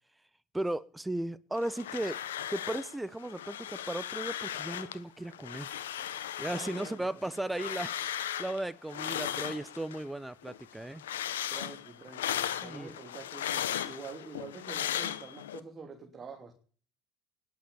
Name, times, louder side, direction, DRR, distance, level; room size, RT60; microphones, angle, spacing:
voice 1, 0.5-2.2 2.5-5.8 6.4-11.1 12.6-13.0, right 1 dB, 10° right, 1.0 m, -36 dB
sound 1, 1.6-2.9 3.2-5.0 5.3-10.1 10.4-15.6, left 11 dB, 85° left, 1.1 m, -37 dB
voice 2, 6.4-7.3 11.5-16.5, right 5 dB, 30° right, 3.3 m, -46 dB
20.0 x 8.4 x 7.1 m
hypercardioid pair, 75°, 0 cm